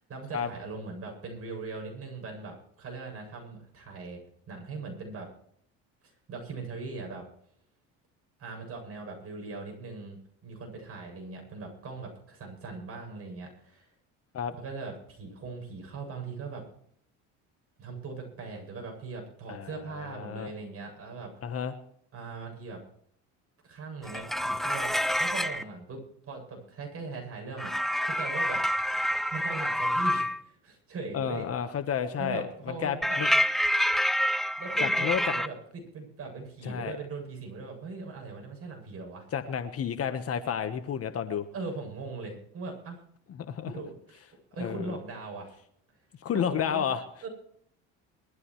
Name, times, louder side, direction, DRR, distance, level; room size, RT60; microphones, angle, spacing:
voice 1, 0.1-5.3 6.3-7.3 8.4-13.9 14.5-16.6 17.8-21.3 22.1-22.8 23.6-26.0 26.3-28.6 29.3-31.5 32.2-33.4 34.6-39.3 41.5-43.0 43.6-44.2 44.5-45.6 46.3-46.9 47.2-47.3, right 4 dB, 45° right, 2 dB, 7.9 m, -40 dB
voice 2, 19.5-20.5 21.4-21.8 31.1-33.3 34.8-35.2 36.6-37.0 39.3-41.4 43.5-43.7 44.6-45.0 46.2-47.0, left 8 dB, 45° left, 9 dB, 1.3 m, -31 dB
sound 1, 24.0-25.6 27.6-30.4 33.0-35.5, equal, ahead, 0.6 m, -27 dB
22.0 x 13.5 x 3.2 m, 0.67 s
supercardioid pair, 95°, 34 cm